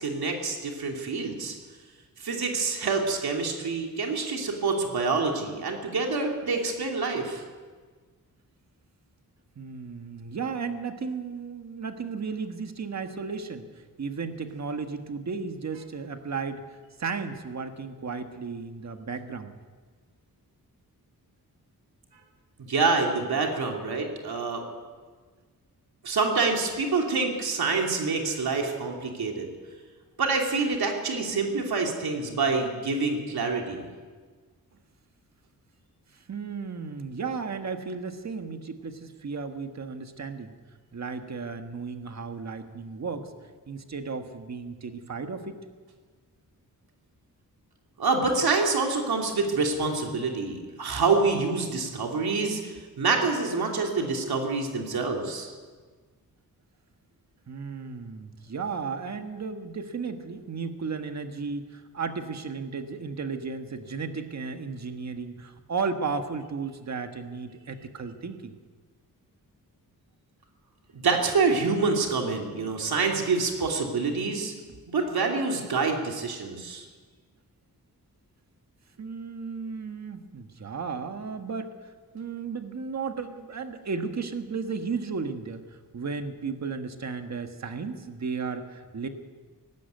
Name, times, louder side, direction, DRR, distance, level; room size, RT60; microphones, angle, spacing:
voice 1, 0.0-1.5 2.2-7.4 22.6-24.6 26.0-29.5 30.2-33.9 48.0-55.5 70.9-74.5 74.9-76.8, right 4 dB, 85° right, 1 dB, 2.9 m, -26 dB
voice 2, 9.5-19.5 36.1-40.5 40.9-43.3 43.7-45.6 57.5-68.5 79.0-89.1, right 5 dB, 45° right, 6 dB, 1.6 m, -34 dB
18.5 x 16.0 x 9.4 m, 1.5 s
wide cardioid pair, 160°, 36 cm